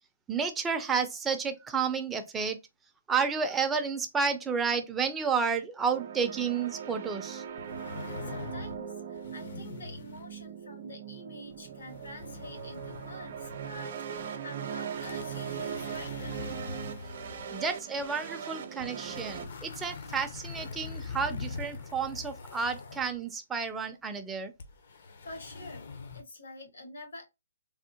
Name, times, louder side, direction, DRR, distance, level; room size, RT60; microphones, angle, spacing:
voice 1, 0.3-2.6 3.1-7.4 17.5-24.5, right 5 dB, 10° right, 0.4 m, -31 dB
sound 1, 5.9-19.5, right 8 dB, 50° right, 0.6 m, -40 dB
sound 2, 7.6-8.9 9.1-10.4 11.5-13.8 14.2-14.3 14.9-18.1 18.8-23.2 24.6-26.2, left 4 dB, 55° left, 0.6 m, -43 dB
voice 2, 8.2-16.5 25.2-27.2, left 2 dB, 80° left, 1.6 m, -47 dB
3.5 x 2.1 x 2.7 m
hypercardioid pair, 160°, 0 cm